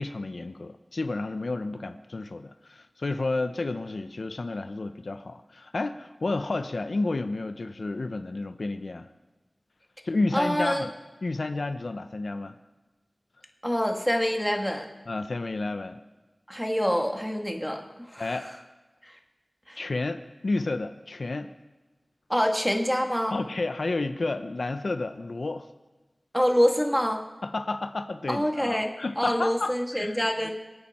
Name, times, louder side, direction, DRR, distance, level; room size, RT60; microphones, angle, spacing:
voice 1, 0.0-9.1 10.0-10.9 11.2-12.5 15.1-16.0 18.2-18.5 19.8-21.5 23.3-25.7 27.4-30.5, left 2 dB, 80° left, 9 dB, 0.6 m, -31 dB
voice 2, 10.3-10.9 13.6-14.9 16.5-18.4 19.0-19.2 19.7-19.8 22.3-23.4 26.3-27.2 28.3-30.5, equal, ahead, 2 dB, 2.0 m, -26 dB
24.5 x 8.7 x 4.3 m, 1.2 s
wide cardioid pair, 45°, 0 cm